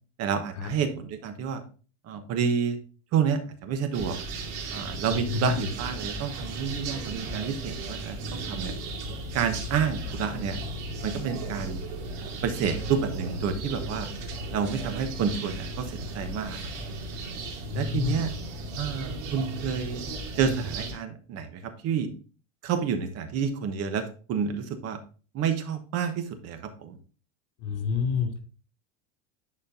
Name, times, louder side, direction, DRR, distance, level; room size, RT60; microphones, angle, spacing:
voice 1, 0.2-1.6 2.0-2.8 3.1-4.2 4.7-8.7 9.3-10.6 11.0-11.8 12.2-14.1 14.5-16.6 17.7-18.3 18.8-20.0 20.3-22.1 22.6-24.0 24.3-25.0 25.3-26.9, right 7 dB, 40° right, 8 dB, 1.1 m, -29 dB
sound 1, 3.9-20.9, right 2 dB, 60° right, 2.2 m, -36 dB
voice 2, 5.1-5.6 17.7-18.2 27.6-28.4, left 6 dB, 60° left, 3 dB, 2.6 m, -28 dB
10.5 x 4.4 x 2.7 m, 0.37 s
supercardioid pair, 125°, 38 cm